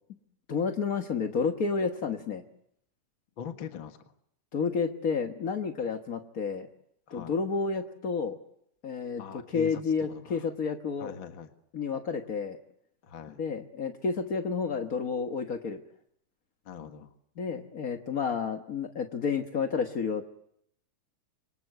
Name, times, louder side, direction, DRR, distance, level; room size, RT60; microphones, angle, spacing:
voice 1, 0.5-2.4 4.5-6.7 7.1-8.4 8.8-11.1 11.7-12.6 13.4-15.8 17.4-20.2, left 5 dB, 60° left, 6 dB, 0.8 m, -30 dB
voice 2, 3.4-4.0 7.1-7.3 9.2-10.5 11.0-11.5 13.0-13.4 16.7-17.1, left 7 dB, 45° left, 7 dB, 1.9 m, -42 dB
27.0 x 25.0 x 8.0 m, 0.72 s
omnidirectional pair, 3.7 m